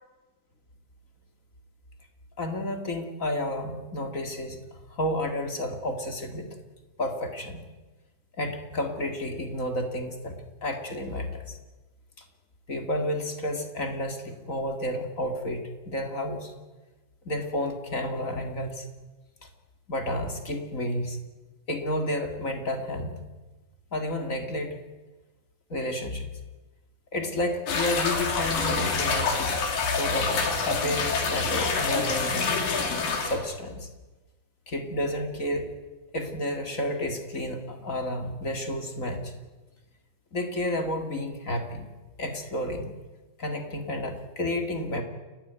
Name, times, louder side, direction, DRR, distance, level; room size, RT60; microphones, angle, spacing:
voice 1, 2.4-4.6 4.9-6.5 7.0-7.6 8.4-10.3 10.6-11.6 12.7-16.5 17.2-18.8 19.9-21.2 21.7-23.2 23.9-24.8 25.7-26.3 27.1-32.6 33.2-33.9 34.7-35.7 36.1-39.3 40.3-41.9 42.2-42.9 43.4-45.0, left 1 dB, 30° left, 5 dB, 2.0 m, -31 dB
sound 1, 27.7-33.4, left 4 dB, 80° left, 4.8 m, -27 dB
30.0 x 14.0 x 9.2 m, 1.2 s
omnidirectional pair, 4.0 m